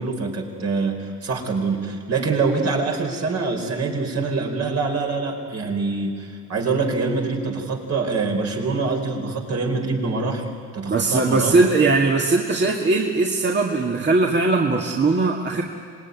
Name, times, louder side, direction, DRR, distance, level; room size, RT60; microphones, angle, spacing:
voice 1, 0.0-10.5 10.7-11.6, right 4 dB, 55° right, 1 dB, 4.7 m, -25 dB
voice 2, 10.9-15.6, right 3 dB, 35° right, 0 dB, 2.0 m, -20 dB
25.5 x 20.0 x 9.6 m, 2.2 s
cardioid pair, 90°, 30 cm